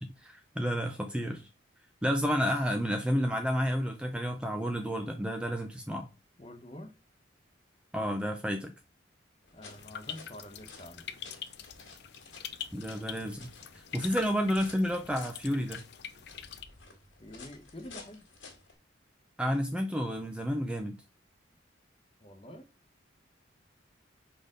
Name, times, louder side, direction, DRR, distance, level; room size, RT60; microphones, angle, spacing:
voice 1, 0.2-1.5 2.0-6.1 7.9-8.7 12.7-13.5 13.7-15.8 19.4-21.0, equal, 5° right, 0.5 m, -30 dB
voice 2, 6.4-6.9 9.5-11.2 17.2-18.2 22.2-22.6, left 1 dB, 30° left, 1.0 m, -47 dB
sound 1, 9.4-18.7, left 4 dB, 80° left, 2.1 m, -52 dB
sound 2, 9.7-16.6, left 9 dB, 60° left, 0.5 m, -44 dB
5.2 x 4.3 x 5.0 m
head